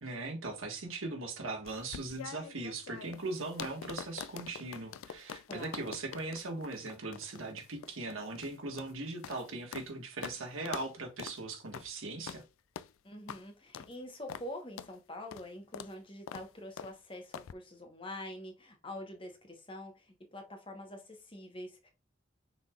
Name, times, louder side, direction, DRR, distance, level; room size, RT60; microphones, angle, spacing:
voice 1, 0.0-12.4, right 2 dB, 85° right, 1.5 m, -39 dB
sound 1, 1.7-9.9 10.2-10.4 10.7-10.9 11.2-11.4 11.7-11.9 12.3-12.4 12.8-12.9 13.3-13.4 13.7-13.9 14.3-14.5 14.8-14.9 15.3-15.5 15.7-15.9 16.3-16.5 16.8-16.9 17.3-17.5, left 8 dB, 90° left, 0.4 m, -45 dB
voice 2, 5.5-5.8 13.0-21.9, left 1 dB, 25° left, 1.0 m, -45 dB
5.9 x 3.6 x 2.4 m
head